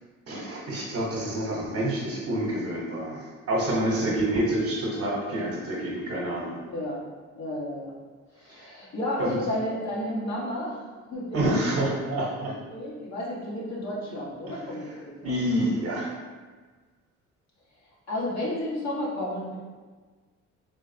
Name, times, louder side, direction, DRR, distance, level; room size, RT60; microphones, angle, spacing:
voice 1, 0.3-6.6 8.5-8.7 9.2-9.4 11.3-12.5 14.5-14.6 15.2-16.1, right 1 dB, 50° right, -3 dB, 0.9 m, -28 dB
voice 2, 3.9-4.3 6.6-7.0 7.4-7.9 8.3-12.2 12.7-15.3 18.1-19.5, left 1 dB, 60° left, -5 dB, 1.4 m, -32 dB
3.7 x 3.2 x 2.7 m, 1.4 s
cardioid pair, 90°, 30 cm